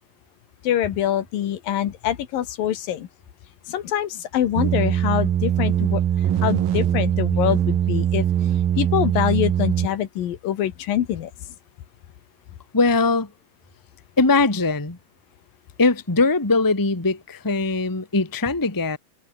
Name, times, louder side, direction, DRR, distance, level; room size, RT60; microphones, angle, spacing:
voice 1, 0.6-3.1 3.7-6.0 6.4-8.3 8.8-11.3, left 11 dB, 75° left, 3.3 m, -24 dB
sound 1, 4.6-9.9, right 10 dB, 85° right, 3.8 m, -21 dB
voice 2, 12.7-13.3 14.2-15.0 15.8-19.0, left 3 dB, 10° left, 1.2 m, -20 dB
omnidirectional pair, 4.1 m